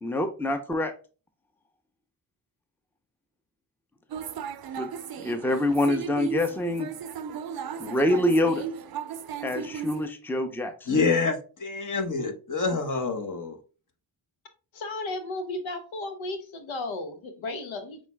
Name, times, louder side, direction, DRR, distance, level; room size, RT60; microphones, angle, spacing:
voice 1, 0.0-0.9 4.8-4.9 5.2-6.9 7.8-8.7 9.4-10.7, left 1 dB, 5° left, 0.6 m, -25 dB
sound 1, 4.1-10.1, right 7 dB, 50° right, 0.5 m, -36 dB
voice 2, 10.9-13.6, left 4 dB, 40° left, 1.1 m, -27 dB
voice 3, 14.7-18.0, left 2 dB, 75° left, 0.9 m, -34 dB
5.9 x 3.1 x 2.2 m
supercardioid pair, 45°, 48 cm